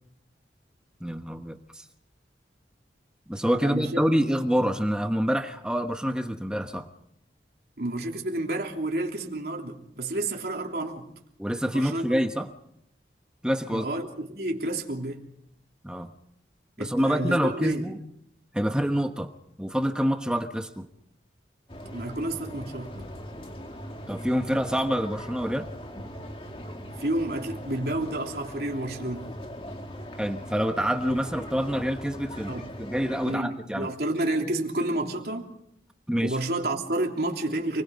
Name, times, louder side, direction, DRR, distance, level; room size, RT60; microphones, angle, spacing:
voice 1, 1.0-1.8 3.3-6.9 11.4-12.5 13.4-13.9 15.8-16.1 16.8-18.0 18.5-19.3 19.6-20.9 24.1-25.7 30.2-32.5 32.8-33.9 36.1-36.4, equal, 5° right, 1.1 m, -26 dB
voice 2, 3.6-4.2 7.8-11.1 11.7-12.2 13.7-15.2 16.8-17.9 21.9-22.9 27.0-29.3 32.5-32.7 33.2-35.5 36.2-37.8, right 1 dB, 60° right, 3.2 m, -30 dB
sound 1, 21.7-33.3, equal, 30° left, 2.2 m, -40 dB
29.0 x 20.5 x 5.3 m
head